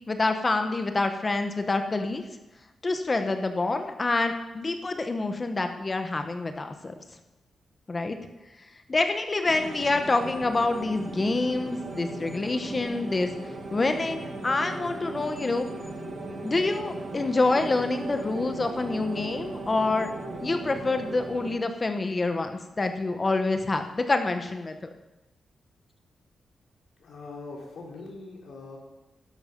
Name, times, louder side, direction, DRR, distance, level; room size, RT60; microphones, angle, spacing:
voice 1, 0.1-2.2 2.8-6.9 7.9-8.2 8.9-13.3 13.7-15.7 16.4-20.1 20.4-24.8, left 3 dB, 25° left, 7 dB, 1.2 m, -27 dB
sound 1, 9.4-21.6, right 2 dB, 65° right, 4.6 m, -37 dB
voice 2, 27.0-28.8, left 3 dB, 70° left, -2 dB, 3.7 m, -42 dB
12.0 x 10.5 x 5.4 m, 1.0 s
wide cardioid pair, 140°, 0 cm